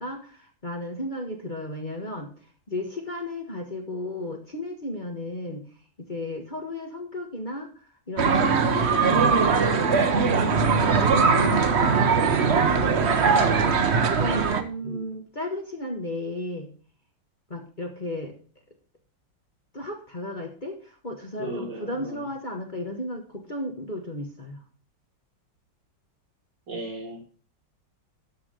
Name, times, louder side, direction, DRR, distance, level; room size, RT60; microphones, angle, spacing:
voice 1, 0.0-2.3 2.7-5.6 6.0-7.7 8.1-10.6 11.0-13.2 13.4-16.7 17.5-18.3 19.7-24.6, left 1 dB, 25° left, 1.5 m, -34 dB
sound 1, 8.2-14.6, right 5 dB, 45° right, 1.0 m, -21 dB
voice 2, 14.8-15.1 21.4-22.2 26.7-27.2, right 1 dB, 70° right, 3.7 m, -36 dB
13.0 x 4.9 x 6.3 m
omnidirectional pair, 2.0 m